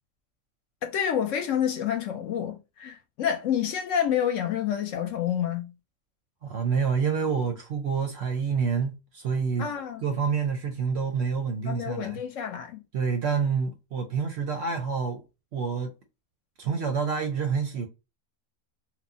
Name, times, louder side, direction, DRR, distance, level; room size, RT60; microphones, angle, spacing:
voice 1, 0.8-5.7 9.6-10.0 11.6-12.8, left 9 dB, 70° left, 0.9 m, -28 dB
voice 2, 6.4-9.7 10.0-12.2 12.9-15.2 15.5-15.9 16.6-17.9, right 6 dB, 65° right, 0.7 m, -27 dB
3.0 x 2.1 x 2.5 m
omnidirectional pair, 1.5 m